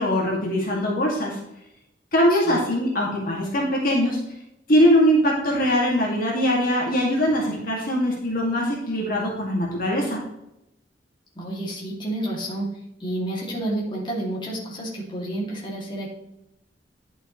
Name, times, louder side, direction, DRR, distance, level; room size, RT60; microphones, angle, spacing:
voice 1, 0.0-1.4 2.1-4.2 4.7-10.2, equal, 50° left, -2 dB, 2.2 m, -21 dB
voice 2, 11.4-12.7 13.0-16.1, right 1 dB, 25° left, -4 dB, 2.4 m, -30 dB
11.0 x 6.2 x 3.1 m, 0.85 s
head